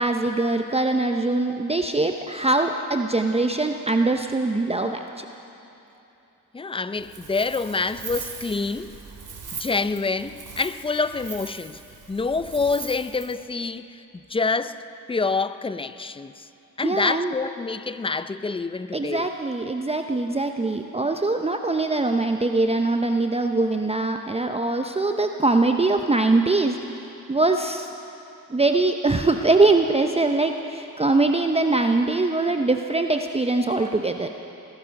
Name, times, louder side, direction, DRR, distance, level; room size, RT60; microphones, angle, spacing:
voice 1, 0.0-5.3 16.8-17.3 18.9-26.8 27.3-27.9 28.5-34.3, right 2 dB, 15° right, 0.7 m, -22 dB
voice 2, 6.5-8.9 9.6-11.8 12.1-14.0 14.3-14.8 15.1-16.5 16.8-19.3, left 4 dB, 15° left, 0.6 m, -27 dB
Wind, 6.9-13.4, right 5 dB, 55° right, 2.9 m, -40 dB
21.0 x 10.5 x 6.4 m
cardioid pair, 60°, 36 cm